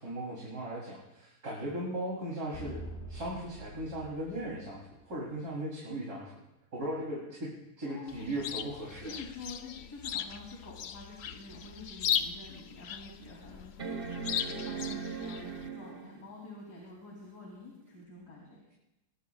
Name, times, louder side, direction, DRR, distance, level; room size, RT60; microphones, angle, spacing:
voice 1, 0.0-2.8 3.1-6.3 6.7-9.1, right 1 dB, 65° right, -5 dB, 3.8 m, -37 dB
sound 1, 2.5-5.2, right 1 dB, 40° left, 2.0 m, -45 dB
voice 2, 7.8-8.5 9.0-18.6, left 3 dB, 80° left, -3 dB, 3.7 m, -48 dB
Chirp tweet, 8.1-15.7, left 9 dB, 60° left, 0.6 m, -38 dB
sound 2, 11.6-11.7 12.3-12.4 13.8-16.3 18.0-18.1, right 5 dB, 40° right, 1.0 m, -39 dB
22.0 x 20.5 x 2.4 m, 0.91 s
omnidirectional pair, 1.7 m